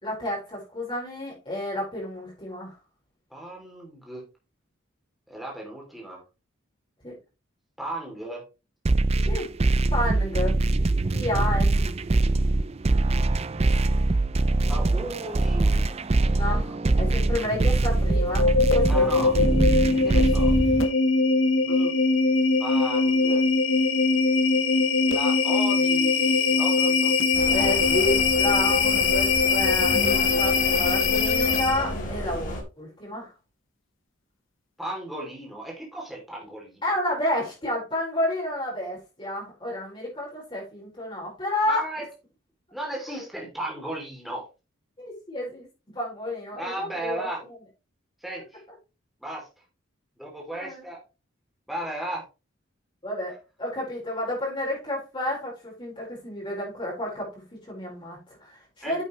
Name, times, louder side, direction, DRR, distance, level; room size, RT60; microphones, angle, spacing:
voice 1, 0.0-2.7 7.0-7.1 9.3-9.5 9.9-10.6 11.1-12.1 16.3-19.2 27.5-30.1 30.3-32.5 32.8-33.3 36.8-41.8 45.0-45.7 45.9-47.3 50.5-50.8 53.0-53.3 53.6-59.0, left 1 dB, 25° left, -5 dB, 4.8 m, -30 dB
voice 2, 3.3-4.2 5.3-6.2 7.8-8.4 14.6-16.0 18.9-19.4 20.0-20.5 21.6-22.0 22.6-23.4 25.1-27.1 34.8-36.8 41.7-42.1 42.7-44.4 46.5-47.4 48.2-48.6 49.2-49.5 50.2-51.0 51.7-52.2 58.8-59.0, right 1 dB, ahead, -2 dB, 3.0 m, -35 dB
sound 1, 8.9-20.9, right 2 dB, 30° right, 0.5 m, -23 dB
sound 2, 18.0-32.0, left 4 dB, 75° left, 2.1 m, -22 dB
sound 3, 27.3-32.6, left 1 dB, 40° left, 4.2 m, -32 dB
9.8 x 8.1 x 3.2 m, 0.30 s
head